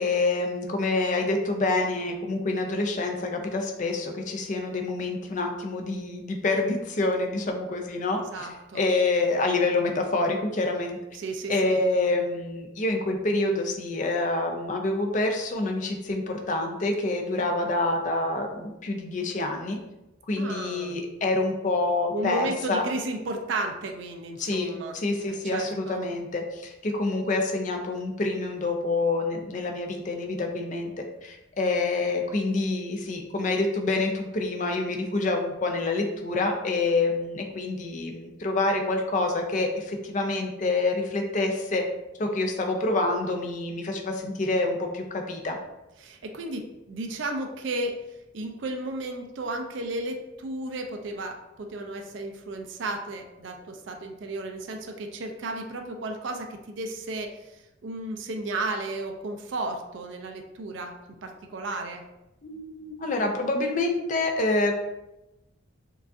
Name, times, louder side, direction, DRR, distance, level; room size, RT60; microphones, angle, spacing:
voice 1, 0.0-8.5 8.7-11.0 11.5-19.8 20.3-22.8 24.4-30.9 31.2-41.8 42.2-45.6 62.4-64.7, left 2 dB, 40° left, 3 dB, 0.4 m, -27 dB
voice 2, 8.1-8.8 11.1-11.8 17.4-17.8 20.4-21.0 22.1-25.0 25.3-26.1 46.0-48.0 48.3-60.9 61.2-62.0, right 2 dB, 65° right, 4 dB, 0.4 m, -34 dB
4.6 x 2.4 x 2.6 m, 0.95 s
head